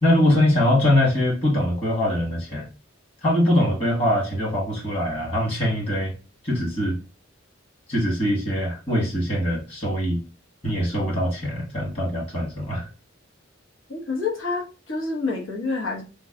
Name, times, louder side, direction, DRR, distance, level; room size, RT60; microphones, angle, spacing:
voice 1, 0.0-2.7 3.2-6.1 6.4-7.0 7.9-10.2 10.6-12.9, left 1 dB, 30° left, -4 dB, 1.5 m, -22 dB
voice 2, 13.9-16.0, left 3 dB, 85° left, 0 dB, 1.0 m, -28 dB
3.1 x 2.2 x 3.5 m, 0.32 s
head